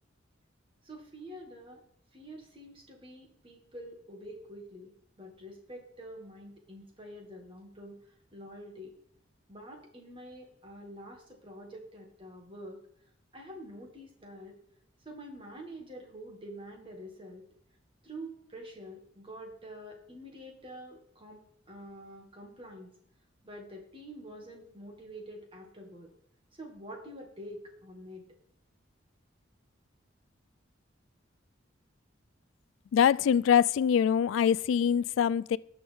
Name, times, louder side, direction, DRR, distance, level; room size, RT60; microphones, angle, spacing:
voice 1, 0.8-1.8 2.1-8.0 8.3-8.9 9.5-12.8 13.3-14.5 15.1-17.4 18.0-21.4 21.7-22.9 23.4-26.1 26.5-28.3, equal, 25° right, 2.2 m, -47 dB
voice 2, 32.9-35.6, left 8 dB, 80° left, 0.3 m, -24 dB
18.5 x 6.2 x 3.6 m
head